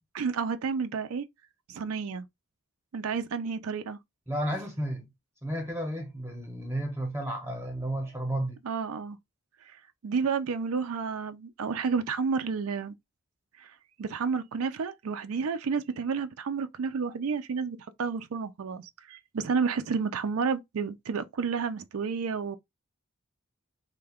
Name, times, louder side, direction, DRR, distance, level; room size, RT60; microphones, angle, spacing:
voice 1, 0.1-1.3 1.7-2.3 2.9-4.0 8.6-9.2 9.7-12.9 13.6-13.7 14.0-22.6, right 5 dB, 85° right, 0.4 m, -31 dB
voice 2, 4.3-5.1 5.4-8.6, right 1 dB, 10° right, 0.8 m, -32 dB
3.3 x 2.2 x 3.4 m
head